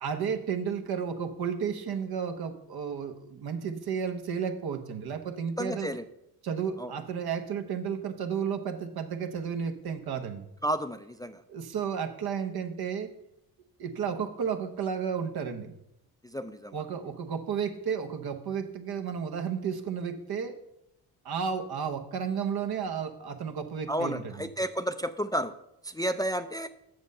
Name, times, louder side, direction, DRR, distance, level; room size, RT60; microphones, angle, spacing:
voice 1, 0.0-5.9 6.4-10.5 11.5-13.1 13.8-15.7 16.7-20.6 21.2-24.5, right 7 dB, 70° right, 7 dB, 1.0 m, -32 dB
voice 2, 5.6-6.0 6.8-6.9 10.6-11.4 16.2-16.8 23.9-25.5 25.8-26.7, equal, 10° left, 10 dB, 0.3 m, -31 dB
7.8 x 6.4 x 5.3 m, 0.83 s
cardioid pair, 70°, 38 cm